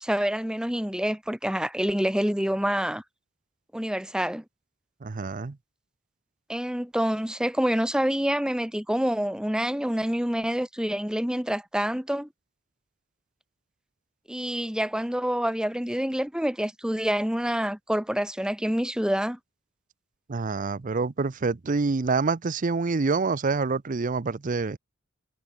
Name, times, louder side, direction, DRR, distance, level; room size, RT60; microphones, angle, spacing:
voice 1, 0.0-3.0 3.7-4.4 6.5-12.3 14.3-19.4, equal, 5° right, 1.5 m, -27 dB
voice 2, 5.0-5.6 20.3-24.8, right 4 dB, 40° right, 0.6 m, -26 dB
head